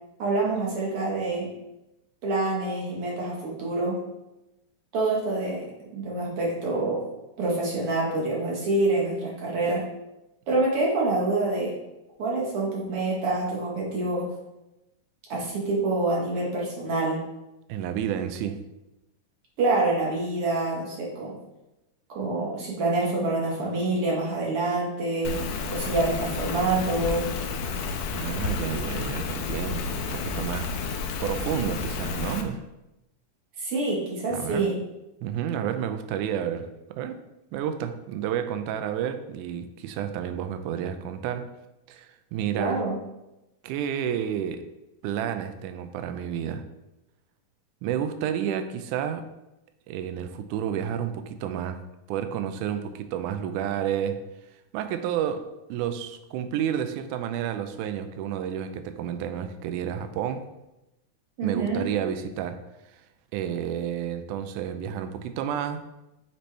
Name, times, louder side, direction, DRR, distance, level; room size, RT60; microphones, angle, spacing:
voice 1, 0.2-1.5 2.2-4.0 4.9-7.1 7.4-9.9 10.5-11.8 12.2-14.4 15.3-17.2 19.6-21.4 22.1-25.4 25.7-27.3 33.6-34.8 42.5-42.9 61.4-61.9, right 2 dB, 60° right, -3 dB, 1.6 m, -26 dB
voice 2, 17.7-18.6 28.1-30.7 31.2-32.6 34.3-34.7 35.2-36.7 36.9-37.2 37.5-41.5 41.9-42.8 43.6-44.6 45.0-46.6 47.8-49.2 49.9-51.8 52.1-54.2 54.7-55.4 55.7-60.5 61.4-62.6 63.3-65.9, right 9 dB, 80° right, 8 dB, 2.0 m, -30 dB
Rain, 25.2-32.4, left 4 dB, 80° left, 1.6 m, -31 dB
8.2 x 4.3 x 3.2 m, 0.94 s
omnidirectional pair, 3.7 m